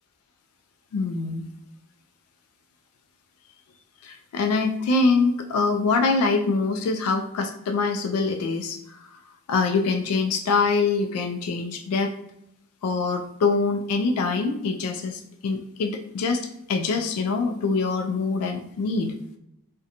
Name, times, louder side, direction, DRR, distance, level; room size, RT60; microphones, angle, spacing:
voice 1, 0.9-1.5 4.0-9.2 9.5-12.1 12.8-16.4 16.7-19.1, left 4 dB, 80° left, 9 dB, 0.3 m, -24 dB
2.5 x 2.1 x 2.7 m, 0.79 s
head